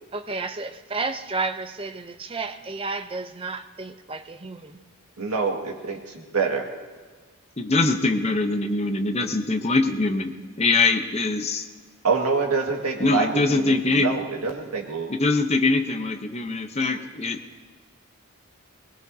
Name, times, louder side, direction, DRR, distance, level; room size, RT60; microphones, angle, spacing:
voice 1, 0.1-4.8, right 3 dB, 25° right, 9 dB, 0.5 m, -32 dB
voice 2, 5.2-6.0 6.3-6.7 12.0-15.1, right 4 dB, 85° right, 1 dB, 1.8 m, -26 dB
voice 3, 7.6-11.6 13.0-14.1 15.1-17.4, left 3 dB, 30° left, 6 dB, 0.7 m, -23 dB
20.5 x 19.5 x 2.7 m, 1.4 s
head